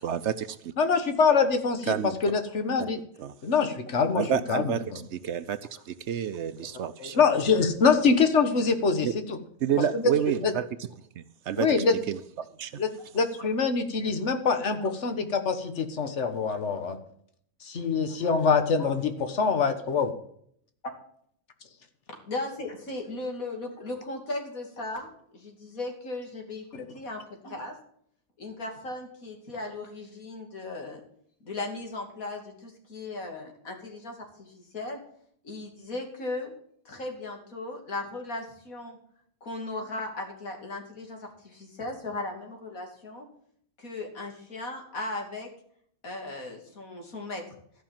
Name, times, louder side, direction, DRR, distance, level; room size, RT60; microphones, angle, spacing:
voice 1, 0.0-0.7 1.9-2.1 2.8-2.9 3.2-3.3 4.1-4.8 5.1-5.6 5.9-7.2 9.0-9.1 9.6-10.9 11.2-11.7 12.1-12.7, right 9 dB, 65° right, 0.8 m, -29 dB
voice 2, 0.8-1.9 2.2-3.0 3.4-4.2 4.5-5.0 7.0-9.4 9.9-10.1 10.4-10.5 11.6-12.0 12.8-12.9 13.1-17.0 17.6-20.1, left 5 dB, 55° left, 1.6 m, -24 dB
voice 3, 22.1-27.8 28.4-31.0 31.4-35.0 35.4-36.5 36.8-39.0 39.4-43.3 43.8-45.5 46.0-47.4, left 2 dB, 90° left, 3.0 m, -37 dB
13.5 x 5.9 x 7.3 m
omnidirectional pair, 1.4 m